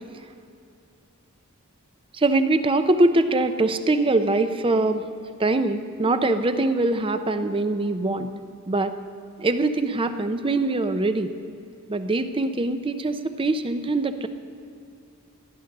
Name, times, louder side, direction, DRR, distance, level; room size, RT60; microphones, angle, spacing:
voice 1, 2.1-5.0 5.4-8.3 8.7-8.9 9.4-11.3 11.9-14.3, right 2 dB, 25° right, 9 dB, 0.6 m, -23 dB
14.5 x 11.0 x 6.6 m, 2.6 s
head